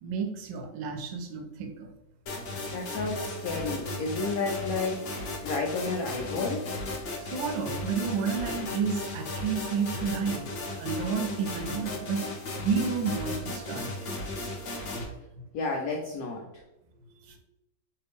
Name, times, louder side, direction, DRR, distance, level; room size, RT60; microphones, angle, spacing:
voice 1, 0.0-1.9 2.5-2.6 7.2-10.4 10.8-12.2 12.6-14.1 17.2-17.4, right 5 dB, 80° right, 4 dB, 1.3 m, -31 dB
sound 1, 2.3-15.1, left 2 dB, 55° left, 0.8 m, -36 dB
voice 2, 2.7-5.1 5.4-6.7 15.5-16.4, left 3 dB, 90° left, -1 dB, 0.7 m, -31 dB
3.3 x 2.6 x 3.4 m, 0.93 s
omnidirectional pair, 2.1 m